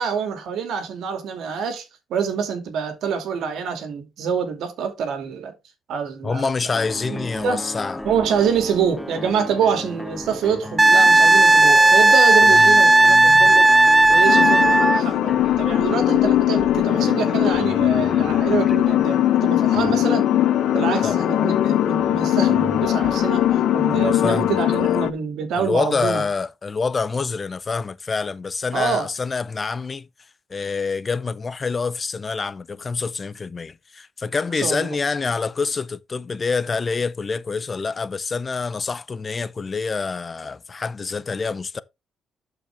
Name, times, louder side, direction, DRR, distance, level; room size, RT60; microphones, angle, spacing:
voice 1, 0.0-5.5 5.9-6.5 7.1-7.6 8.0-13.7 14.1-20.3 20.7-26.3 28.7-29.1 34.5-34.9, right 6 dB, 75° right, 2.3 m, -26 dB
voice 2, 6.2-8.0 12.5-12.8 21.0-21.3 23.9-25.0 25.5-30.1 30.5-41.8, left 4 dB, 35° left, 0.6 m, -26 dB
sound 1, 6.7-23.9, left 1 dB, 10° left, 0.9 m, -34 dB
Wind instrument woodwind instrument, 10.8-15.0 17.7-17.8, right 2 dB, 15° right, 0.3 m, -13 dB
sound 2, 14.3-25.1, left 13 dB, 80° left, 0.5 m, -20 dB
12.0 x 5.0 x 3.3 m
cardioid pair, 90°, 0 cm